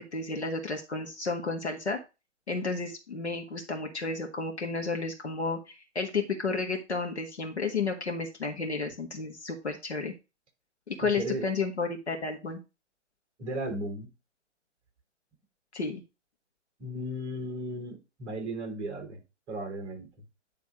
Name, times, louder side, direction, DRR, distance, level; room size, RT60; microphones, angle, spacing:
voice 1, 0.0-2.0 2.5-10.1 10.9-12.6 15.7-16.0, left 4 dB, 65° left, 1.7 m, -32 dB
voice 2, 11.0-11.5 13.4-14.1 16.8-19.2 19.5-20.1, right 1 dB, 15° right, 1.6 m, -35 dB
9.5 x 3.4 x 5.1 m
figure-of-eight pair, 135°, 36 cm